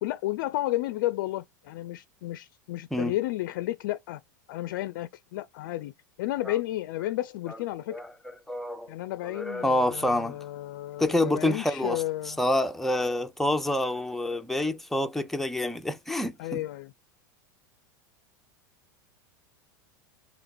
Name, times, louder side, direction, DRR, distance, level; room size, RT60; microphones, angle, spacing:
voice 1, 0.0-4.2 4.5-5.9 6.2-8.0 8.9-12.4 16.4-16.9, left 15 dB, 65° left, 0.4 m, -32 dB
voice 2, 7.9-8.9 9.2-10.4 11.0-16.6, left 1 dB, ahead, 0.6 m, -28 dB
2.9 x 2.8 x 4.2 m
hypercardioid pair, 95°, 11 cm